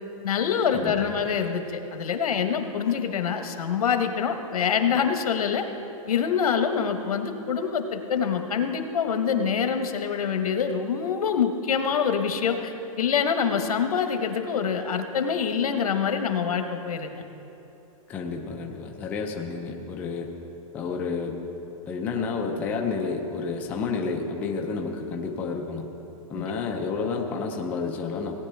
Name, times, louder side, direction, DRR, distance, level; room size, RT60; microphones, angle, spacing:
voice 1, 0.2-5.6 6.1-17.2 26.3-26.5, left 7 dB, 90° left, 7 dB, 1.1 m, -25 dB
voice 2, 18.1-20.3 20.7-21.4 21.9-25.9 26.3-28.3, left 4 dB, 10° left, 1 dB, 0.4 m, -30 dB
18.0 x 10.0 x 3.4 m, 3.0 s
hypercardioid pair, 170°, 18 cm